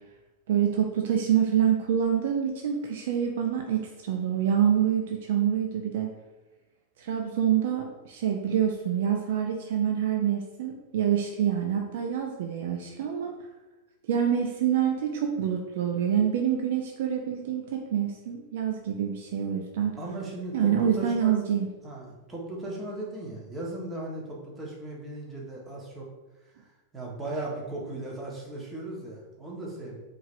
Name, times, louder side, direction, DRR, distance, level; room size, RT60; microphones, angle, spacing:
voice 1, 0.5-6.1 7.0-13.3 14.1-20.0 20.5-21.7, right 9 dB, 65° right, 2 dB, 0.4 m, -26 dB
voice 2, 20.0-21.4 21.8-26.0 26.9-30.0, right 2 dB, 20° right, -3 dB, 1.3 m, -37 dB
4.6 x 3.2 x 2.6 m, 1.1 s
hypercardioid pair, 95°, 0 cm